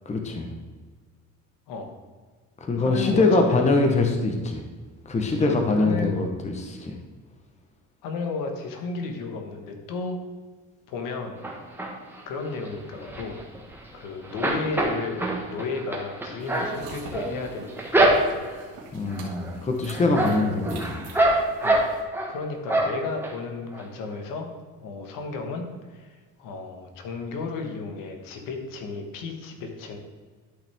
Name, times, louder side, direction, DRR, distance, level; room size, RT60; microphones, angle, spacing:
voice 1, 0.1-0.5 2.6-4.6 5.1-6.9 18.9-21.0, left 3 dB, 20° left, 4 dB, 0.9 m, -23 dB
voice 2, 2.8-3.6 5.4-6.2 8.0-10.2 10.9-11.4 12.3-13.4 13.9-18.5 20.3-20.5 21.6-24.5 24.8-30.0, left 4 dB, 75° left, 4 dB, 1.5 m, -33 dB
sound 1, 11.4-12.2 12.6-14.0 14.2-18.6 19.1-19.5 19.9-22.3 22.7-23.3 23.7-23.8 24.1-24.2, right 1 dB, 5° right, 1.3 m, -25 dB
sound 2, 16.4-22.0, right 4 dB, 70° right, 1.9 m, -43 dB
12.0 x 5.6 x 3.5 m, 1.4 s
cardioid pair, 130°, 33 cm